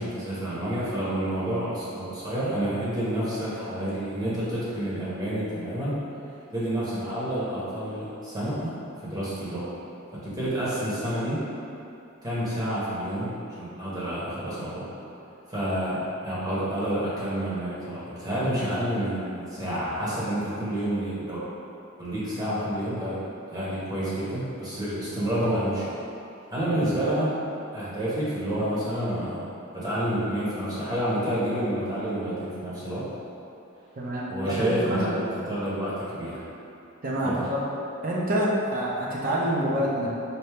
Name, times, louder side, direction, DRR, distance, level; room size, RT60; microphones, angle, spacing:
voice 1, 0.0-6.0 6.5-9.7 10.1-11.5 12.2-14.9 15.5-21.4 22.0-26.0 26.5-27.4 27.7-29.5 29.7-33.0 34.3-35.1 35.5-36.4 37.2-37.5, right 1 dB, 20° right, -9 dB, 1.0 m, -29 dB
voice 2, 34.0-35.2 37.0-37.6 38.0-40.1, equal, 45° right, -4 dB, 0.7 m, -27 dB
4.3 x 2.7 x 3.4 m, 2.8 s
head